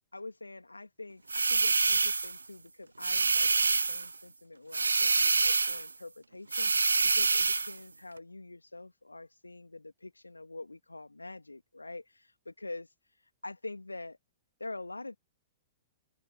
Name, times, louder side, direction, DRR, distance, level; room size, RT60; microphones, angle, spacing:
voice 1, 0.1-14.2 14.6-15.2, left 2 dB, 85° left, 2.1 m, -45 dB
sound 1, 1.3-2.4 3.0-4.1 4.7-5.9 6.5-7.8, right 4 dB, 75° right, 0.7 m, -26 dB
figure-of-eight pair, 105°, 0 cm